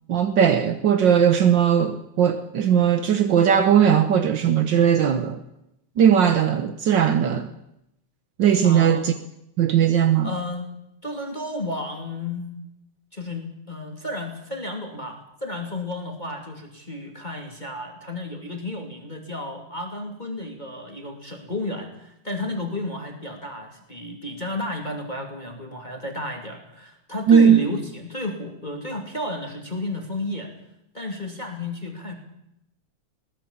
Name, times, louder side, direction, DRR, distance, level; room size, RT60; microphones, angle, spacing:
voice 1, 0.1-5.4 6.0-7.5 8.4-9.1 9.6-10.3 27.3-27.6, right 8 dB, 65° right, 1.1 m, -18 dB
voice 2, 8.6-9.0 10.2-10.7 11.0-12.5 13.1-30.5 30.9-32.2, left 1 dB, 15° left, 2.6 m, -32 dB
21.5 x 18.5 x 7.3 m
omnidirectional pair, 3.3 m